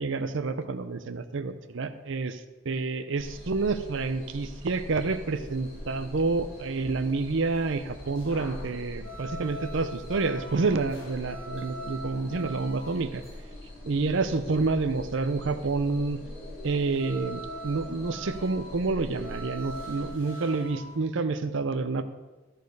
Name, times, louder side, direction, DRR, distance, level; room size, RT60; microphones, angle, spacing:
voice 1, 0.0-13.2 13.8-16.2 16.6-22.0, right 3 dB, 60° right, 10 dB, 0.6 m, -28 dB
sound 1, 3.2-20.1, equal, 40° left, 2.9 m, -43 dB
sound 2, 5.0-13.4 16.8-21.0, right 1 dB, 60° left, 1.9 m, -43 dB
13.5 x 4.6 x 4.8 m, 1.2 s
head